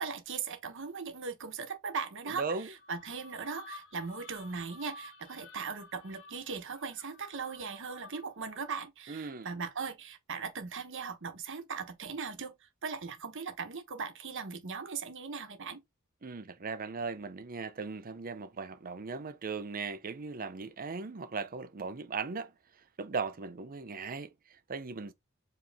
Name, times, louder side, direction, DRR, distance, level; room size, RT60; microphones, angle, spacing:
voice 1, 0.0-15.8, right 5 dB, 60° right, 1.0 m, -39 dB
voice 2, 2.3-2.7 9.1-9.5 16.2-22.5 23.0-25.1, right 4 dB, 40° right, 0.6 m, -38 dB
sound 1, 2.7-8.4, left 3 dB, 65° left, 1.0 m, -53 dB
5.0 x 3.0 x 3.4 m
head